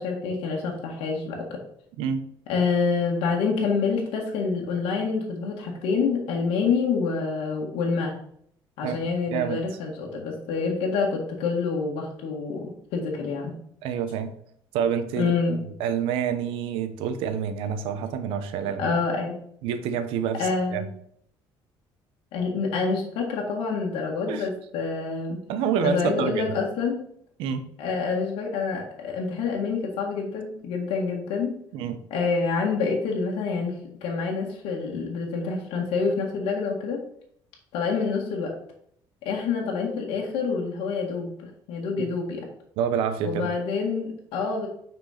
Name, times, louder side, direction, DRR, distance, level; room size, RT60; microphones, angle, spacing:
voice 1, 0.0-1.6 2.5-8.1 8.8-13.6 15.2-15.6 18.8-19.4 20.4-21.0 22.3-25.4 25.8-27.0 27.8-31.5 32.1-37.0 37.7-38.5 39.2-42.4 43.2-44.7, left 4 dB, 85° left, -1 dB, 1.7 m, -27 dB
voice 2, 9.3-9.6 13.8-14.3 14.7-15.3 15.8-18.9 19.6-20.8 24.3-24.5 25.5-26.4 27.4-27.6 31.7-32.0 42.0-42.1 42.8-43.5, right 7 dB, 90° right, 10 dB, 0.9 m, -27 dB
6.0 x 4.5 x 5.7 m, 0.68 s
cardioid pair, 170°, 9 cm